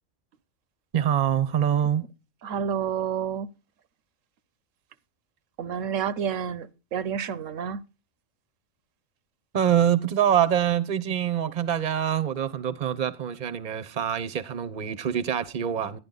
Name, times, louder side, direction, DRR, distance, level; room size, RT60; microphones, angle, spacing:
voice 1, 0.9-2.1 9.5-16.0, right 9 dB, 40° right, 0.9 m, -25 dB
voice 2, 2.4-3.5 5.6-7.8, right 8 dB, 80° right, 1.1 m, -29 dB
11.0 x 11.0 x 3.9 m
omnidirectional pair, 1.3 m